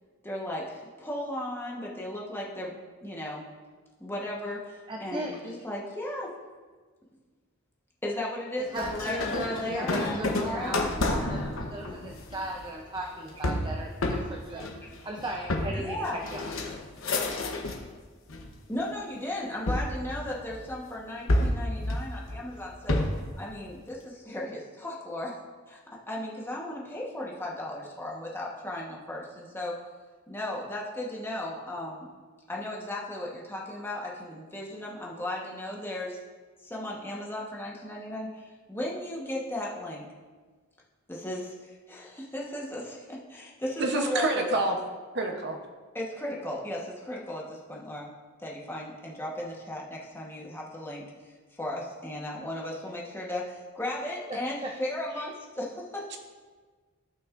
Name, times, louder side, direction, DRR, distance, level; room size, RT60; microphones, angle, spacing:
voice 1, 0.2-3.5 4.0-6.3 8.0-10.9 14.8-14.9 15.7-16.2 18.7-23.0 23.4-25.4 25.7-25.8 26.1-29.7 30.3-32.1 32.5-36.2 36.6-40.1 41.1-44.6 45.9-48.1 48.4-51.0 51.5-56.1, left 1 dB, 10° left, -3 dB, 1.2 m, -36 dB
voice 2, 4.9-5.4 8.6-14.7 15.0-16.5 54.3-54.7 55.1-55.2, right 1 dB, 20° right, 1 dB, 0.6 m, -37 dB
sound 1, 8.8-17.9 18.3-18.9 19.7-20.7 21.3-23.3, left 1 dB, 70° left, 1.0 m, -30 dB
voice 3, 43.8-44.7 45.1-45.6, right 2 dB, 55° right, 3 dB, 0.9 m, -27 dB
15.0 x 5.9 x 2.6 m, 1.4 s
head